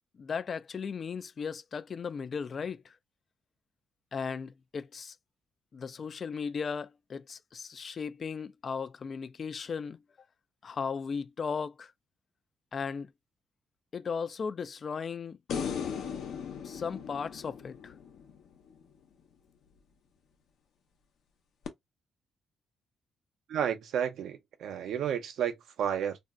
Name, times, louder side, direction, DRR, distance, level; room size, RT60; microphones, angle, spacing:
voice 1, 0.2-3.0 4.1-5.2 5.7-10.0 10.6-11.9 12.7-13.1 13.9-15.4 16.6-17.9, left 6 dB, 45° left, 0.3 m, -36 dB
sound 1, 15.5-18.8 21.7-21.8, left 7 dB, 75° left, 0.8 m, -37 dB
voice 2, 23.5-26.2, right 9 dB, 75° right, 0.6 m, -32 dB
2.5 x 2.2 x 3.6 m
cardioid pair, 90°, 0 cm